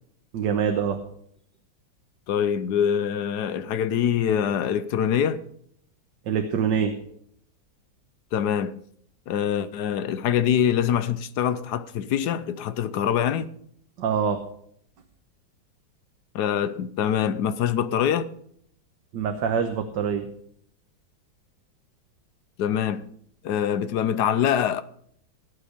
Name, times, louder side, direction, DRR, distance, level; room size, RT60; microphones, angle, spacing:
voice 1, 0.3-1.0 6.3-6.9 14.0-14.4 19.1-20.3, right 7 dB, 65° right, 1.7 m, -25 dB
voice 2, 2.3-5.4 8.3-8.8 9.3-13.5 16.3-18.3 22.6-23.0 23.4-24.8, left 9 dB, 65° left, 1.2 m, -24 dB
18.0 x 8.5 x 5.1 m
omnidirectional pair, 2.1 m